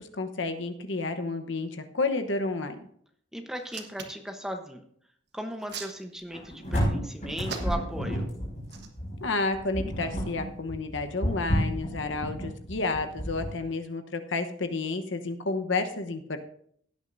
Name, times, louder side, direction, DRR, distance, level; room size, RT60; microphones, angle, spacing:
voice 1, 0.0-2.8 9.2-16.4, left 3 dB, 65° left, 7 dB, 1.0 m, -31 dB
voice 2, 3.3-4.8 5.3-8.2, equal, 5° right, 4 dB, 0.9 m, -37 dB
Hands, 3.6-4.3 5.3-6.5 7.4-8.0 8.6-8.9, right 6 dB, 55° right, 1.3 m, -39 dB
sound 1, 6.3-13.5, equal, 35° left, 5.5 m, -30 dB
16.5 x 8.9 x 2.6 m, 0.64 s
head